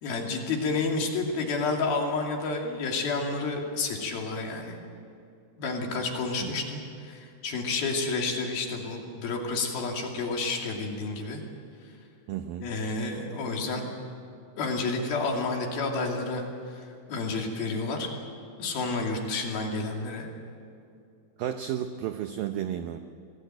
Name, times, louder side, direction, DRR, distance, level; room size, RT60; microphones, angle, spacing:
voice 1, 0.0-4.8 5.6-11.4 12.6-13.9 14.6-16.4 16.7-18.1 18.6-20.3, left 3 dB, 60° left, 1 dB, 4.3 m, -30 dB
voice 2, 12.3-12.7 21.4-23.0, right 10 dB, 80° right, 7 dB, 2.1 m, -32 dB
25.5 x 20.0 x 9.0 m, 2.4 s
omnidirectional pair, 5.1 m